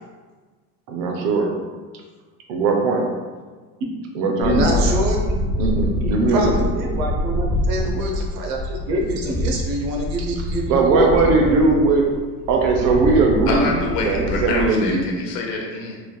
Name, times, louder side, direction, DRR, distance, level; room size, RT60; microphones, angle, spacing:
voice 1, 0.9-1.5 2.5-3.1 4.1-4.9 5.6-6.7 10.3-10.4 10.7-12.1 12.5-13.7 14.0-15.0, right 3 dB, 45° right, 1 dB, 0.5 m, -19 dB
sound 1, 4.4-14.6, left 1 dB, 25° left, 1.0 m, -25 dB
voice 2, 4.4-5.3 6.3-11.2, right 1 dB, 70° right, 0 dB, 0.8 m, -25 dB
voice 3, 13.5-16.0, left 3 dB, 70° left, 0 dB, 0.8 m, -26 dB
3.2 x 2.4 x 2.2 m, 1.4 s
supercardioid pair, 130°, 49 cm